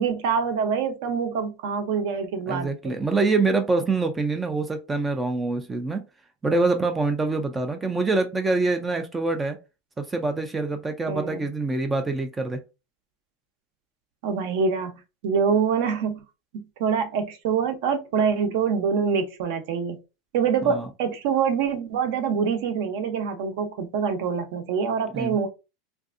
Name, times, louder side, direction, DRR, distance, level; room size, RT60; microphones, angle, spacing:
voice 1, 0.0-3.0 11.1-11.5 14.2-14.9 15.2-16.2 16.8-20.0 20.3-25.5, right 6 dB, 55° right, 0.6 m, -25 dB
voice 2, 2.5-6.0 6.4-9.6 10.0-12.6 20.6-20.9 25.1-25.4, right 3 dB, 10° right, 0.3 m, -25 dB
3.2 x 2.5 x 2.5 m
supercardioid pair, 170°, 0 cm